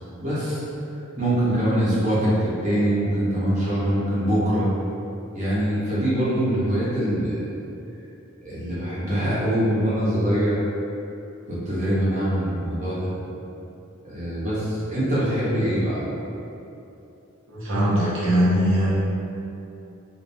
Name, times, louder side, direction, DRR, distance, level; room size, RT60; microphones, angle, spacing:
voice 1, 0.2-0.6 1.2-4.7 5.3-7.4 8.4-10.6 11.5-13.1 14.0-16.0, right 1 dB, 35° right, -10 dB, 1.1 m, -23 dB
voice 2, 17.5-18.9, equal, 60° right, -10 dB, 1.0 m, -21 dB
4.2 x 2.3 x 3.5 m, 2.8 s
head